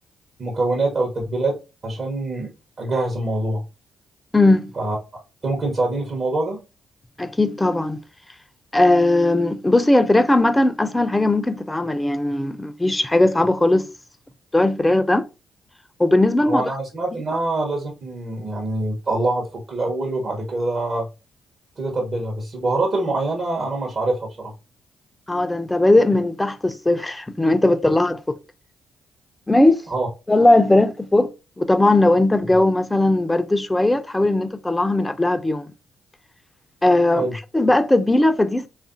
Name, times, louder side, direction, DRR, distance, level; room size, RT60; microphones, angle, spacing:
voice 1, 0.4-1.6 1.8-2.5 2.8-3.6 4.7-5.0 5.4-6.6 16.4-21.1 21.8-24.5 29.9-30.1 37.1-37.3, right 2 dB, 45° right, 0.8 m, -24 dB
voice 2, 4.3-4.7 7.2-8.0 8.7-13.9 14.5-15.3 16.0-16.6 25.3-28.4 29.5-29.8 30.3-31.3 31.6-35.7 36.8-37.3 37.5-38.7, left 2 dB, 15° left, 0.4 m, -18 dB
3.4 x 2.5 x 2.5 m
hypercardioid pair, 40°, 0 cm